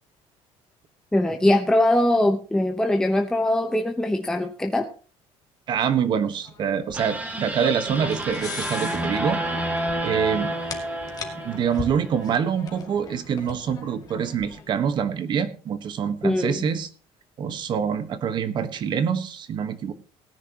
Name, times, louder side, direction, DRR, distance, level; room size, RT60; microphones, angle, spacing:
voice 1, 1.1-4.9 16.2-16.6, left 1 dB, 5° left, 3 dB, 1.0 m, -21 dB
voice 2, 5.7-9.4 10.0-10.5 11.3-16.9 17.4-19.9, right 7 dB, 40° right, 11 dB, 1.4 m, -25 dB
sound 1, 6.4-15.0, left 6 dB, 35° left, 2.3 m, -40 dB
sound 2, 6.9-12.2, right 1 dB, 15° right, 2.4 m, -29 dB
18.5 x 10.0 x 3.0 m, 0.38 s
cardioid pair, 155°, 11 cm